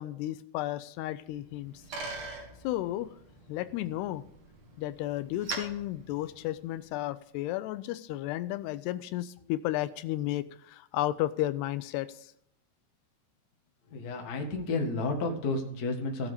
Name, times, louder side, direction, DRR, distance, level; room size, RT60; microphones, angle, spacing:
voice 1, 0.0-1.8 2.6-3.1 3.5-4.2 4.8-12.3, left 15 dB, 85° left, 14 dB, 2.7 m, -33 dB
Bicycle, 1.3-7.0, right 3 dB, 45° right, 2.9 m, -43 dB
voice 2, 13.9-16.3, left 3 dB, 40° left, 2 dB, 1.3 m, -31 dB
16.0 x 7.2 x 5.1 m, 0.73 s
omnidirectional pair, 4.8 m